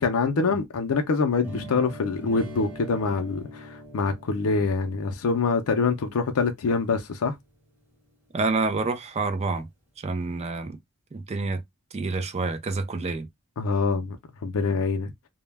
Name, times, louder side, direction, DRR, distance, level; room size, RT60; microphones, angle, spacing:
voice 1, 0.0-7.4 13.6-14.2 14.4-15.1, left 4 dB, 70° left, 0.5 m, -25 dB
sound 1, 1.4-7.4, equal, 10° right, 0.9 m, -42 dB
voice 2, 8.3-9.7 10.0-10.8 11.1-11.6 11.9-13.3, right 3 dB, 30° right, 0.4 m, -28 dB
2.1 x 2.1 x 3.2 m
head